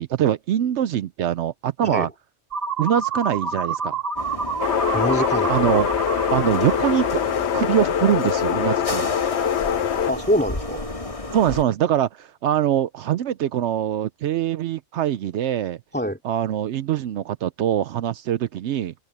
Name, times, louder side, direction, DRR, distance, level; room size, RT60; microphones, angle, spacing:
voice 1, 0.0-2.1 2.8-4.0 5.5-5.9 6.3-7.2 7.5-9.1 11.3-15.8 16.2-18.9, right 10 dB, 70° right, 0.8 m, -23 dB
sound 1, 2.5-7.5, right 5 dB, 30° right, 2.8 m, -28 dB
sound 2, 4.2-11.6, left 2 dB, 25° left, 1.9 m, -32 dB
sound 3, 4.6-10.1, left 9 dB, 65° left, 1.0 m, -23 dB
voice 2, 4.9-5.8 10.1-10.8 15.9-16.2, equal, 10° left, 2.4 m, -24 dB
open air
omnidirectional pair, 1.3 m